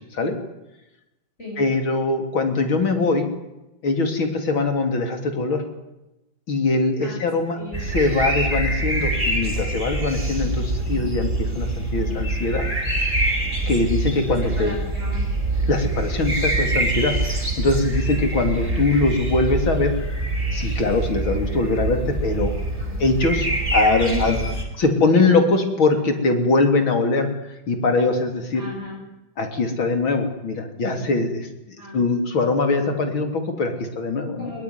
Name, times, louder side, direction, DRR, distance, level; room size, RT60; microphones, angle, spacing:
voice 1, 1.6-3.3 3.8-5.6 6.5-7.6 7.9-12.6 13.7-14.8 15.7-19.9 20.5-22.5 23.0-24.4 24.8-27.3 27.7-28.6 29.4-31.5 31.9-34.5, left 3 dB, 75° left, 6 dB, 4.2 m, -22 dB
sound 1, 7.7-24.6, right 2 dB, 20° right, 4.7 m, -25 dB
voice 2, 11.9-12.2 14.4-15.3 22.8-23.0 23.9-24.5 24.8-24.9 28.5-29.0 31.8-32.0 34.4-34.6, left 1 dB, 30° left, -5 dB, 8.5 m, -34 dB
21.0 x 20.5 x 9.8 m, 0.94 s
omnidirectional pair, 2.2 m